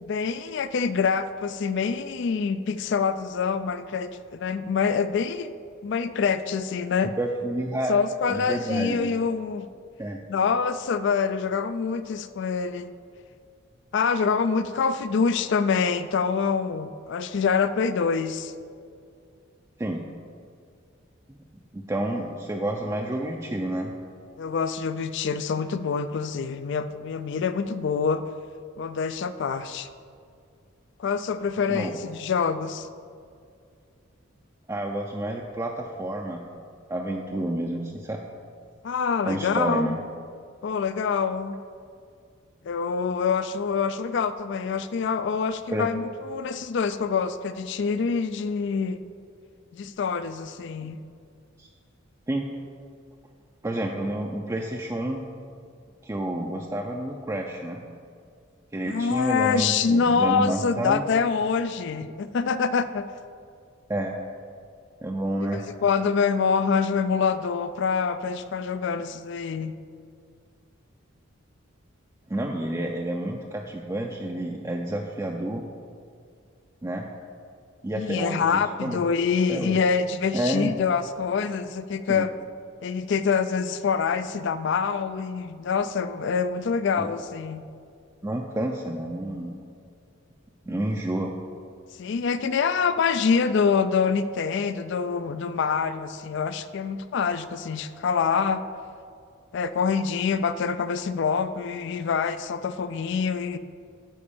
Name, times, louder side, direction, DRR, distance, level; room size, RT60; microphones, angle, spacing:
voice 1, 0.0-5.5 5.8-7.1 7.9-9.7 10.3-12.9 13.9-18.5 24.4-28.2 28.8-29.9 31.0-32.9 38.8-39.9 40.6-41.6 42.6-49.0 49.7-51.0 58.8-63.1 65.5-69.7 78.0-82.3 82.8-87.6 92.0-98.6 99.5-103.6, left 5 dB, 60° left, 13 dB, 0.3 m, -25 dB
voice 2, 7.2-7.9 8.3-9.1 10.0-10.2 19.8-20.0 21.3-21.4 21.7-23.9 31.7-31.9 34.7-36.4 36.9-38.2 39.3-40.0 45.7-45.9 51.6-51.7 52.3-52.5 53.6-55.2 56.0-57.8 58.7-61.0 63.9-64.2 65.0-65.6 72.3-75.6 76.8-77.1 77.8-79.0 79.5-79.8 80.3-80.7 82.1-82.2 87.0-87.1 88.2-89.5 90.7-91.4, right 1 dB, 15° right, 0 dB, 0.4 m, -29 dB
10.0 x 4.5 x 7.0 m, 2.3 s
head